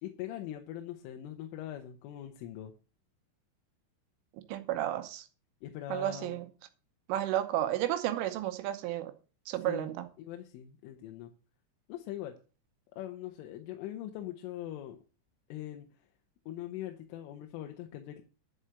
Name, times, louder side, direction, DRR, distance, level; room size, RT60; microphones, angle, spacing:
voice 1, 0.0-2.7 5.6-6.4 9.6-9.9 10.2-11.3 11.9-12.3 12.9-15.0 15.5-15.9 16.5-18.2, left 12 dB, 85° left, 3.5 m, -41 dB
voice 2, 4.5-5.3 5.9-6.5 7.1-9.1 9.5-10.1, right 13 dB, 85° right, 3.4 m, -32 dB
11.5 x 4.9 x 7.7 m
omnidirectional pair, 5.7 m